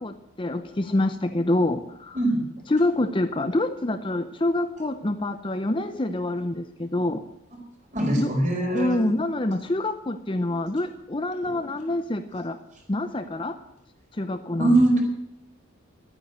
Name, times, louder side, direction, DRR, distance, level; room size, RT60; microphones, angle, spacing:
voice 1, 0.0-2.2 2.7-7.2 8.2-8.3 8.7-12.6 12.9-13.6 14.1-14.8, left 1 dB, 25° left, 9 dB, 0.6 m, -26 dB
voice 2, 2.1-2.5 7.9-9.0 11.5-11.6 14.6-15.0, right 1 dB, 35° right, 0 dB, 4.7 m, -22 dB
12.0 x 9.3 x 9.1 m, 0.83 s
head